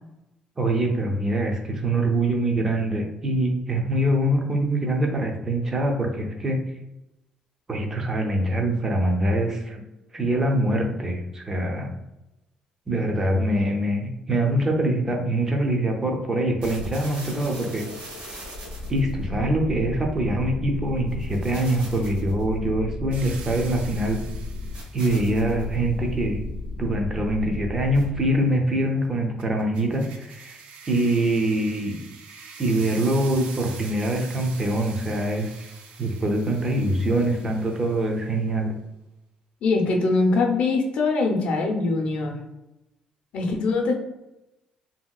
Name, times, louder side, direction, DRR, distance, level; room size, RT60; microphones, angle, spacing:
voice 1, 0.6-6.6 7.7-9.8 10.1-11.9 12.9-17.8 18.9-24.2 24.9-26.4 26.8-30.6 30.9-32.0 32.6-35.7 36.0-38.8, right 1 dB, 20° right, 2 dB, 0.5 m, -24 dB
sound 1, 16.6-28.4, left 2 dB, 60° right, 1.1 m, -34 dB
sound 2, 23.1-25.4 29.4-38.3, right 5 dB, 80° right, 0.4 m, -45 dB
voice 2, 39.6-42.4 43.3-43.9, left 3 dB, 60° left, 1 dB, 0.6 m, -22 dB
2.9 x 2.7 x 2.3 m, 0.95 s
cardioid pair, 145°, 2 cm